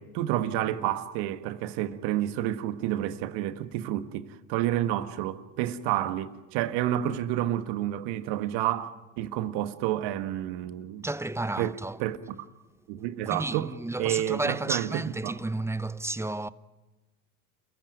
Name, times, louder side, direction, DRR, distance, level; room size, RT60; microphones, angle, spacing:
voice 1, 0.0-11.0 11.6-11.7 12.0-12.2 12.9-13.7 14.0-15.4, right 12 dB, 65° right, 1.6 m, -29 dB
voice 2, 11.0-12.0 13.3-16.5, right 2 dB, 5° right, 0.7 m, -32 dB
29.0 x 14.5 x 9.2 m
hypercardioid pair, 85°, 43 cm